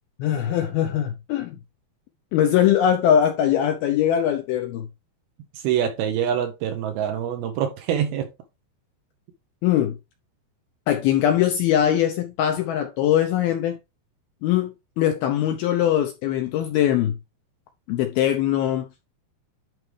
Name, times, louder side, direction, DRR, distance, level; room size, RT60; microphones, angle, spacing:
voice 1, 0.2-1.6 2.3-4.9 9.6-10.0 10.9-13.8 14.4-17.2 17.9-19.1, left 10 dB, 80° left, 2.2 m, -21 dB
voice 2, 5.5-8.3, right 9 dB, 75° right, 2.4 m, -25 dB
11.0 x 4.5 x 3.3 m
omnidirectional pair, 5.1 m